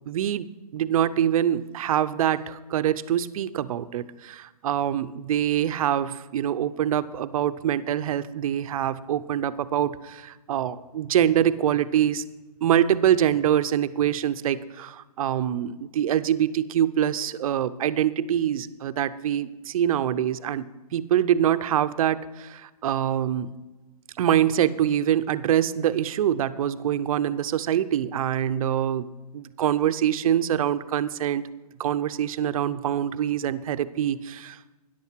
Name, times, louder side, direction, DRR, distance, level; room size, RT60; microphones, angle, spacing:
voice 1, 0.1-12.2 12.6-20.6 20.9-23.5 24.2-29.1 29.3-31.5 31.8-34.6, right 10 dB, 60° right, 13 dB, 0.7 m, -24 dB
13.5 x 10.5 x 4.6 m, 1.1 s
hypercardioid pair, 135°, 20 cm